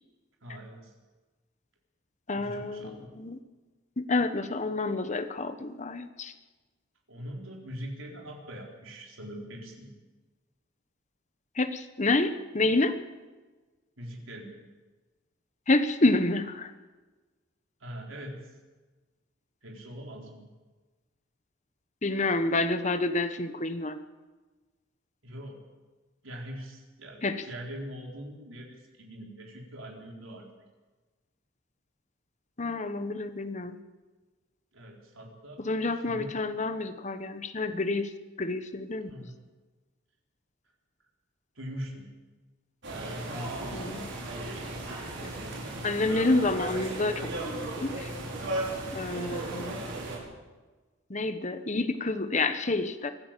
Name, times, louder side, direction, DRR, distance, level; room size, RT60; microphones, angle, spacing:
voice 1, 0.4-0.9 2.3-3.1 7.1-9.9 14.0-14.6 17.8-18.5 19.6-20.4 25.2-25.6 26.2-30.5 34.7-35.6 35.9-36.4 39.1-39.4 41.5-42.1 43.0-43.9 44.2-44.9, equal, 80° right, 0 dB, 4.4 m, -42 dB
voice 2, 2.3-3.4 4.0-6.3 11.6-13.0 15.7-16.7 22.0-24.0 27.2-27.4 32.6-33.8 35.6-38.1 38.4-39.1 43.7-44.1 45.8-48.1 48.9-49.8 51.1-53.1, left 2 dB, 35° left, 9 dB, 1.2 m, -28 dB
sound 1, 42.8-50.2, right 2 dB, 60° right, 5.9 m, -35 dB
24.5 x 14.5 x 7.6 m, 1.3 s
head